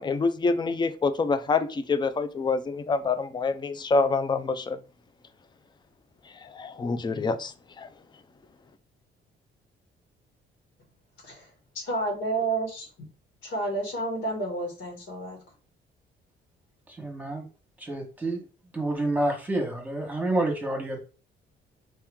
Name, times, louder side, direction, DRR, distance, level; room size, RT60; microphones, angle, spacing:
voice 1, 0.0-4.8 6.4-7.9, left 4 dB, 20° left, 12 dB, 0.5 m, -26 dB
voice 2, 11.9-12.9 13.4-15.4, right 2 dB, 75° left, 0 dB, 2.5 m, -30 dB
voice 3, 16.9-17.5 17.8-18.4 18.7-21.0, right 1 dB, 10° right, 1 dB, 1.3 m, -28 dB
4.4 x 3.0 x 3.6 m, 0.35 s
cardioid pair, 90°, 20 cm